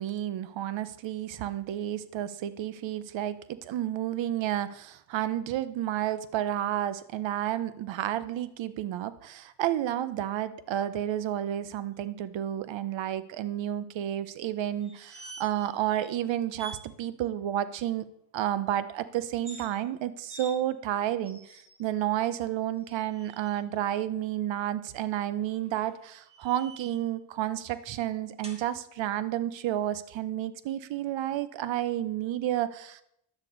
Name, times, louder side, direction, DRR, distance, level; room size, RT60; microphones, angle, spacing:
voice 1, 0.0-18.0 18.3-21.4 21.8-33.0, right 12 dB, 65° right, 15 dB, 0.8 m, -31 dB
sound 1, 14.8-15.7 16.0-16.1 16.5-16.8 19.3-19.7 20.3-20.5 21.2-21.8 22.8-23.6 25.5-27.1 28.4-28.6, right 2 dB, 10° right, 2.1 m, -47 dB
10.5 x 8.3 x 3.9 m, 0.76 s
cardioid pair, 80°, 49 cm